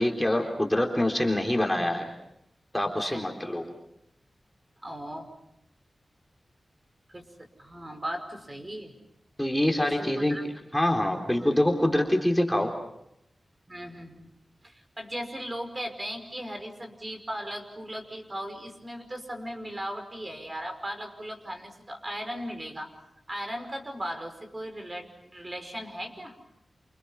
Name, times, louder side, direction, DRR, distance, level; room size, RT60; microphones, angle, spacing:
voice 1, 0.0-2.1 2.7-3.7 9.4-10.4 10.7-12.7, left 1 dB, 10° left, 2 dB, 3.8 m, -25 dB
voice 2, 3.0-3.3 4.8-5.3 7.1-7.2 7.6-8.9 10.0-10.4 11.4-11.6 13.7-14.3 14.6-22.9 23.3-26.3, equal, 30° right, 6 dB, 5.4 m, -37 dB
29.0 x 28.5 x 5.8 m, 0.81 s
wide cardioid pair, 80°, 0 cm